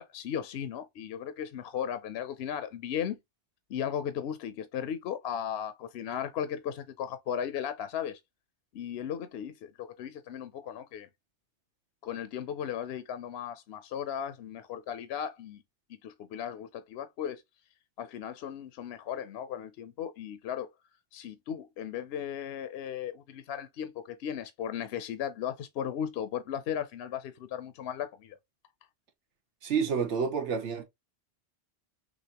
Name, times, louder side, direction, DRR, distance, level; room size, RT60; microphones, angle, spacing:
voice 1, 0.0-3.2 3.7-8.2 8.7-11.1 12.0-15.6 15.9-17.4 18.0-20.7 21.1-28.4, left 9 dB, 70° left, 0.8 m, -36 dB
voice 2, 29.6-30.8, right 6 dB, 85° right, 1.3 m, -29 dB
6.2 x 2.7 x 2.9 m
omnidirectional pair, 1.1 m